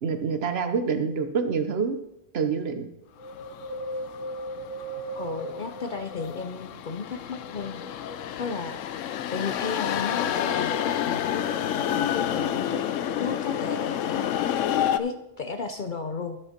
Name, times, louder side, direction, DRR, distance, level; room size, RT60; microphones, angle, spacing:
voice 1, 0.0-2.0 2.3-2.9, right 5 dB, 60° right, 8 dB, 1.0 m, -26 dB
Wind, 3.2-6.7 7.3-8.5 9.1-9.2, right 1 dB, 10° right, 0.8 m, -38 dB
sound 1, 3.3-15.0, left 10 dB, 85° left, 1.0 m, -29 dB
voice 2, 5.1-7.8 8.4-8.8 9.3-12.8 13.2-14.3 15.0-16.4, left 4 dB, 50° left, 8 dB, 0.7 m, -34 dB
12.0 x 5.4 x 5.8 m, 0.85 s
omnidirectional pair, 1.3 m